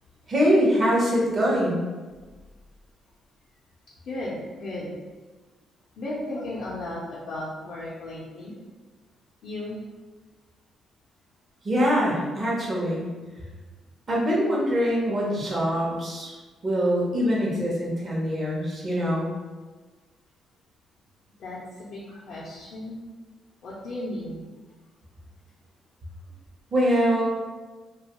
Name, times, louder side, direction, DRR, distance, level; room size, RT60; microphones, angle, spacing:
voice 1, 0.3-1.8 11.6-13.0 14.1-16.3 16.6-19.3 26.7-27.3, equal, 40° right, -5 dB, 0.7 m, -23 dB
voice 2, 4.1-4.9 6.0-8.5 9.4-9.8 21.4-21.6 21.9-23.0 23.6-24.4, left 1 dB, 70° left, -6 dB, 0.5 m, -35 dB
2.5 x 2.3 x 2.9 m, 1.3 s
cardioid pair, 90°, 0 cm